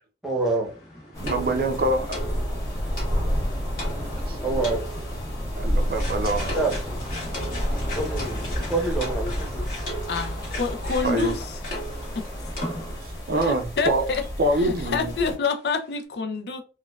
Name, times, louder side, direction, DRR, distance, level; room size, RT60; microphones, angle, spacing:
voice 1, 0.2-0.7 4.4-4.8 6.5-6.7 7.9-9.8, right 3 dB, ahead, 0.8 m, -26 dB
sound 1, 0.6-13.2 13.4-13.6 14.2-14.3 14.6-14.7, equal, 55° left, 1.5 m, -38 dB
sound 2, 1.1-15.3, equal, 20° left, 1.2 m, -30 dB
voice 2, 1.2-2.1 4.3-4.4 5.6-6.6 11.0-11.3 13.3-14.0 14.4-15.1, right 1 dB, 55° right, 0.5 m, -24 dB
voice 3, 10.1-11.5 12.2-12.3 13.4-14.2 14.6-16.6, left 4 dB, 70° left, 0.4 m, -27 dB
4.1 x 2.2 x 2.3 m
head